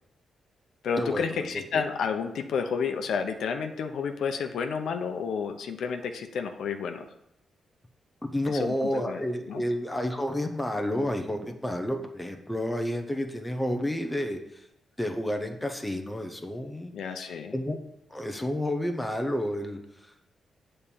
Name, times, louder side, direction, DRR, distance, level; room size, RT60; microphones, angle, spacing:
voice 1, 0.8-7.1 8.4-9.2 9.5-9.6 16.9-17.6, left 6 dB, 75° left, 6 dB, 0.7 m, -31 dB
voice 2, 8.2-14.7 15.0-16.9 17.5-17.8 18.1-20.2, left 1 dB, 5° left, 4 dB, 0.7 m, -30 dB
8.8 x 4.3 x 7.0 m, 0.82 s
wide cardioid pair, 150°, 0 cm